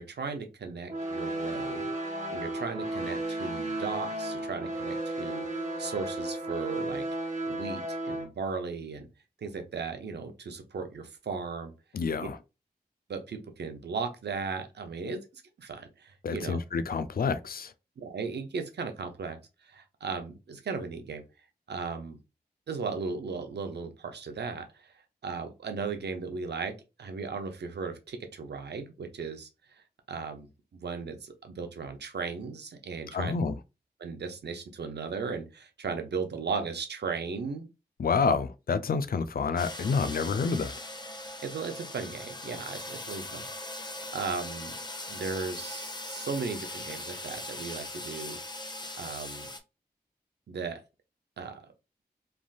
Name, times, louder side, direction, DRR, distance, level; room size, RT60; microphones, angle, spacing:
voice 1, 0.0-7.1 7.5-9.1 9.4-11.7 12.2-12.3 13.1-16.6 18.0-21.2 21.7-22.2 22.7-25.0 25.2-26.7 27.0-33.4 34.0-37.7 41.4-43.5 43.7-44.7 45.1-48.4 49.0-49.5 50.5-50.8 51.4-51.7, right 5 dB, 90° right, 0.6 m, -36 dB
sound 1, 0.9-8.2, right 1 dB, 45° right, 1.3 m, -34 dB
voice 2, 11.9-12.4 16.2-17.7 33.1-33.5 38.0-40.7, left 5 dB, 60° left, 0.4 m, -28 dB
sound 2, 39.6-49.6, left 2 dB, 25° left, 0.6 m, -40 dB
3.3 x 2.5 x 2.3 m
cardioid pair, 40°, 17 cm